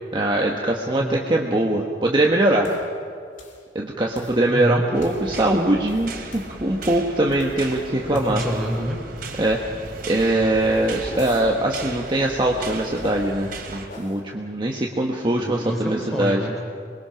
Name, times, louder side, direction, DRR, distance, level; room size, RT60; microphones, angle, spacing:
voice 1, 0.1-2.7 3.7-8.4 9.4-9.6 10.1-16.4, right 1 dB, 25° right, -1 dB, 1.3 m, -22 dB
sound 1, 2.6-2.9 3.4-3.6 4.1-4.5 5.0-5.3 5.7-7.7 8.1-8.6 10.5-11.5 12.6-13.3 13.9-14.2, left 2 dB, 45° left, 2.9 m, -42 dB
voice 2, 4.5-4.8 8.1-9.0 15.4-16.6, equal, ahead, -1 dB, 4.3 m, -27 dB
sound 2, 4.9-13.9, right 3 dB, 55° right, 2.8 m, -37 dB
27.0 x 21.5 x 5.8 m, 2.2 s
head